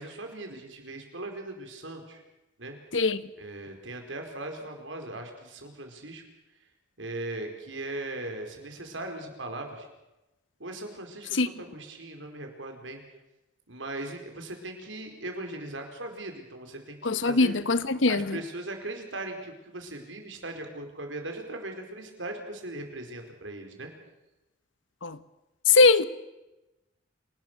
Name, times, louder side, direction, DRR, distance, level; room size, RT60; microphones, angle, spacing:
voice 1, 0.0-2.2 2.6-2.8 3.4-6.2 7.0-9.9 10.6-13.0 13.7-17.6 18.0-23.9, right 2 dB, 90° right, 4.6 m, -39 dB
voice 2, 17.0-18.4 25.0-25.2 25.7-26.0, left 3 dB, 85° left, 1.1 m, -21 dB
28.5 x 19.0 x 6.2 m
head